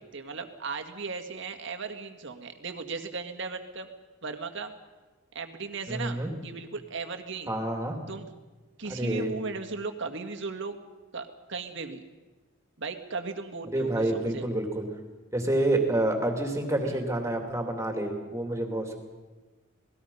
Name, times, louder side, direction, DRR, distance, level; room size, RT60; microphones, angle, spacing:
voice 1, 0.0-3.9 4.2-4.7 5.3-7.5 8.1-8.3 8.8-10.7 11.1-12.0 12.8-14.5 16.8-17.0, right 4 dB, 60° right, 7 dB, 1.9 m, -37 dB
voice 2, 5.9-6.3 7.5-7.9 8.9-9.3 13.7-14.9 15.3-18.9, right 1 dB, 15° right, 3 dB, 2.8 m, -28 dB
27.0 x 19.5 x 5.6 m, 1.2 s
head